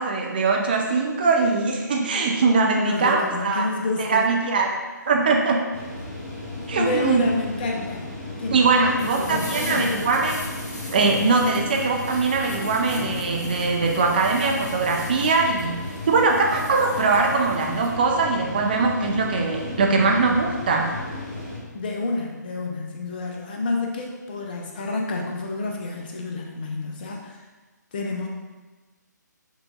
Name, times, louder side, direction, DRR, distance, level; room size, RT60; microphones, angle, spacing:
voice 1, 0.0-3.7 4.0-4.8 5.1-5.6 6.7-7.2 8.5-10.3 10.9-20.9, right 4 dB, 30° right, 1 dB, 0.4 m, -21 dB
voice 2, 2.8-4.2 6.8-8.1 8.4-10.1 21.7-27.4 27.9-28.3, left 3 dB, 30° left, 0 dB, 0.5 m, -29 dB
sound 1, 5.7-21.6, left 2 dB, 10° left, 1.1 m, -35 dB
sound 2, 9.0-17.9, left 1 dB, 60° left, 1.2 m, -38 dB
6.4 x 2.5 x 2.4 m, 1.3 s
figure-of-eight pair, 140°, 10 cm